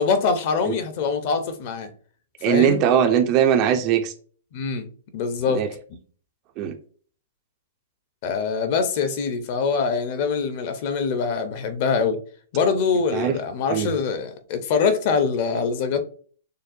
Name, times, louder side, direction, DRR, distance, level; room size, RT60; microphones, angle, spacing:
voice 1, 0.0-1.9 2.5-2.8 4.5-4.9 5.1-5.7 8.2-12.2 12.5-16.0, left 5 dB, 35° left, 0.6 m, -24 dB
voice 2, 2.4-4.1 5.5-5.7 6.6-6.8 13.1-13.4 13.7-13.9, right 9 dB, 25° right, 0.4 m, -20 dB
6.5 x 2.2 x 2.6 m
hypercardioid pair, 175°, 0 cm